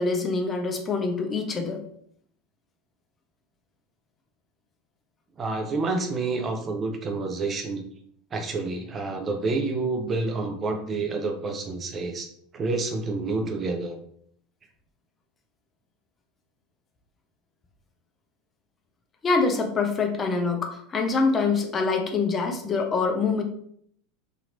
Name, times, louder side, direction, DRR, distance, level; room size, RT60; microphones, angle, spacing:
voice 1, 0.0-1.8 19.2-23.4, left 4 dB, 30° left, 3 dB, 0.6 m, -25 dB
voice 2, 5.4-7.8 8.3-12.3 12.5-14.0, right 3 dB, 30° right, 4 dB, 0.5 m, -28 dB
2.9 x 2.8 x 2.6 m, 0.64 s
hypercardioid pair, 85°, 0 cm